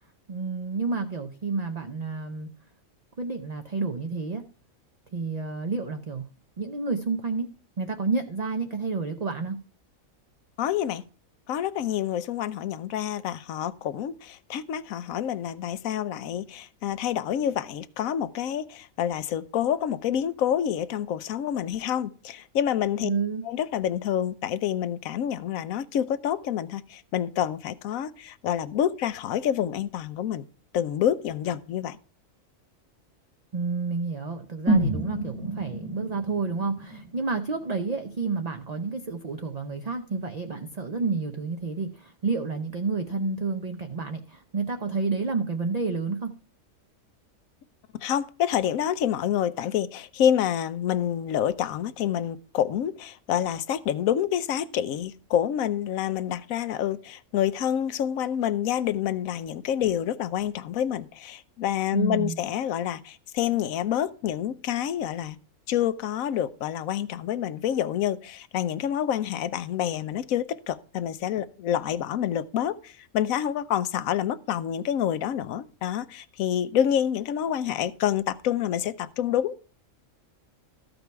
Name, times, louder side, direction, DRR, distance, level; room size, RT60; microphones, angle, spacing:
voice 1, 0.3-2.5 3.2-4.4 5.1-6.2 6.6-7.5 7.8-9.6 23.0-23.4 33.5-46.3 61.9-62.4, right 4 dB, 40° right, 0.6 m, -30 dB
voice 2, 10.6-11.0 11.5-23.1 23.4-30.5 30.7-32.0 48.0-65.4 65.7-79.6, left 10 dB, 85° left, 1.1 m, -27 dB
sound 1, 34.7-38.6 38.9-39.0, right 1 dB, ahead, 1.1 m, -29 dB
13.5 x 5.3 x 4.6 m
omnidirectional pair, 1.4 m